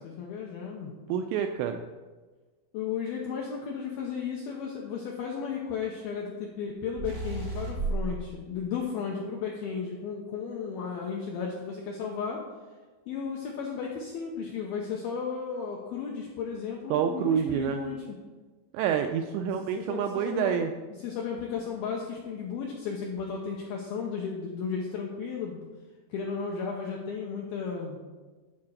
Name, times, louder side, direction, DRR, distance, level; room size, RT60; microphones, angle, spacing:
voice 1, 0.0-0.9 2.7-12.4 13.1-18.0 19.4-19.5 19.8-20.5 21.0-25.7 26.1-28.0, left 6 dB, 85° left, -1 dB, 2.2 m, -34 dB
voice 2, 1.1-1.8 16.9-17.8 18.7-20.7, right 8 dB, 85° right, 5 dB, 2.5 m, -27 dB
sound 1, 7.0-8.2, right 3 dB, 45° right, 0.9 m, -32 dB
12.0 x 4.2 x 6.3 m, 1.3 s
omnidirectional pair, 5.5 m